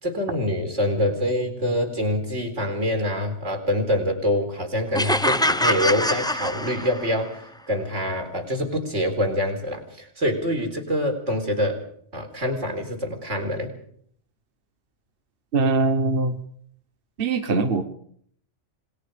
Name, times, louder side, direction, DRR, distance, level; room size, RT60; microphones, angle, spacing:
voice 1, 0.0-7.4 7.7-11.8 12.1-13.7, left 1 dB, 80° right, 4 dB, 4.7 m, -25 dB
sound 1, 4.9-7.3, left 1 dB, 5° left, 0.6 m, -24 dB
voice 2, 15.5-16.4 17.2-17.8, right 3 dB, 50° right, 9 dB, 1.4 m, -22 dB
26.5 x 21.5 x 5.2 m, 0.63 s
omnidirectional pair, 1.2 m